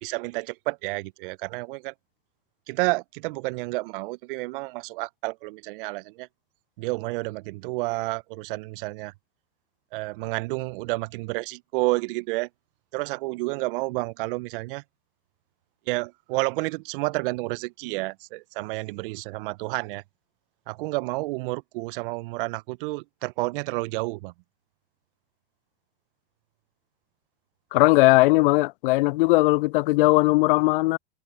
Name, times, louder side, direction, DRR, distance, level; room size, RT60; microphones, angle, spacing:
voice 1, 0.0-1.9 2.7-6.3 6.8-9.1 9.9-12.5 12.9-14.8 15.9-20.0 20.7-24.3, right 23 dB, 60° right, 0.9 m, -30 dB
voice 2, 27.7-31.0, left 22 dB, 65° left, 0.4 m, -19 dB
hypercardioid pair, 85°, 30 cm